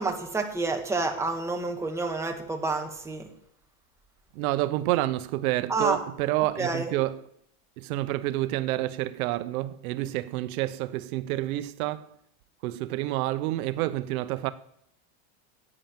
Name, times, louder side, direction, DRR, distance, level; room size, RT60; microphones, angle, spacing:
voice 1, 0.0-3.3 5.7-6.0 6.6-6.9, right 3 dB, 5° right, 1.4 m, -29 dB
voice 2, 4.3-7.3 7.8-12.1 12.6-14.5, right 16 dB, 80° right, 0.8 m, -28 dB
11.0 x 8.8 x 7.4 m
supercardioid pair, 145°, 42 cm